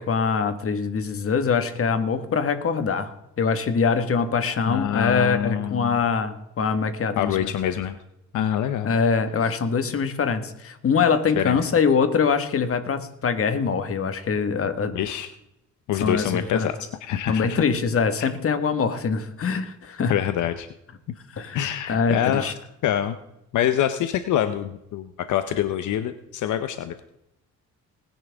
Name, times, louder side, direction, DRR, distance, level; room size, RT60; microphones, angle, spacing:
voice 1, 0.0-7.5 8.8-14.9 16.0-16.7 17.3-20.1 21.3-22.5, left 5 dB, 50° left, 10 dB, 1.7 m, -23 dB
voice 2, 4.7-6.0 7.2-8.0 8.3-8.9 11.4-11.6 14.9-15.3 15.9-16.7 17.0-17.6 20.1-20.7 21.5-22.5 22.8-23.2 23.5-27.0, left 10 dB, 75° left, 10 dB, 0.9 m, -25 dB
20.0 x 10.5 x 3.6 m, 0.86 s
cardioid pair, 90°, 30 cm